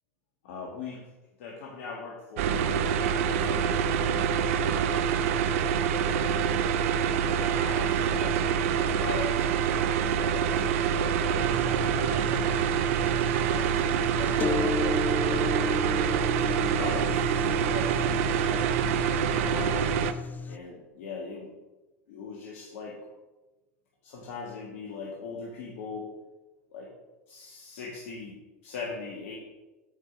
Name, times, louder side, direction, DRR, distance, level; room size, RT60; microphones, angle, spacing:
voice 1, 0.4-1.1 1.4-3.9 4.8-5.2 7.3-8.4 8.7-12.9 13.4-14.8 15.2-15.5 16.1-17.2 17.7-18.7 19.4-20.0 20.5-21.5 22.1-23.0 24.0-26.1 26.7-26.9 27.3-29.4, left 4 dB, 70° left, -2 dB, 1.8 m, -41 dB
sound 1, 2.4-20.1, right 8 dB, 70° right, 0.7 m, -26 dB
sound 2, 11.4-20.6, left 4 dB, 20° left, 0.4 m, -34 dB
9.2 x 5.0 x 6.1 m, 1.1 s
hypercardioid pair, 90°, 8 cm